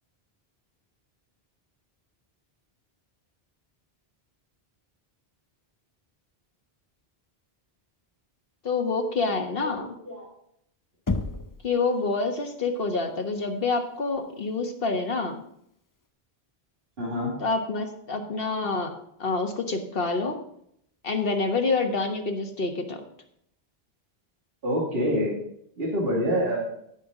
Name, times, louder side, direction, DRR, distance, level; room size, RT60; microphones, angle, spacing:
voice 1, 8.6-9.9 11.6-15.4 17.4-18.9 19.2-20.4 21.0-23.0, left 3 dB, 65° left, 4 dB, 1.6 m, -27 dB
voice 2, 9.6-10.3 17.0-17.3 24.6-25.4 25.8-26.7, equal, 70° right, -4 dB, 2.5 m, -27 dB
Knock, 11.1-11.7, left 3 dB, 25° left, 0.5 m, -28 dB
16.5 x 5.7 x 3.8 m, 0.70 s
omnidirectional pair, 1.0 m